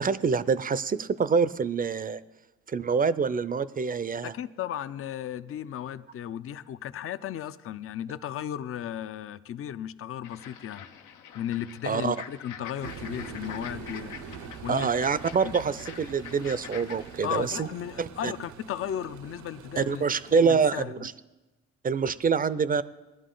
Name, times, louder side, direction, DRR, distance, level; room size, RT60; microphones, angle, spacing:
voice 1, 0.0-2.2 2.7-4.3 11.8-12.2 14.7-17.7 18.0-18.3 19.8-21.1 21.8-22.8, right 5 dB, 30° right, 16 dB, 0.5 m, -26 dB
voice 2, 4.2-10.9 11.3-14.9 15.4-15.5 17.2-20.0 20.3-21.1, left 10 dB, 45° left, 14 dB, 0.5 m, -35 dB
sound 1, 10.2-17.6, left 8 dB, 90° left, 1.0 m, -45 dB
sound 2, 12.8-20.7, right 6 dB, 75° right, 0.8 m, -44 dB
19.0 x 11.0 x 3.9 m, 1.1 s
cardioid pair, 90°, 30 cm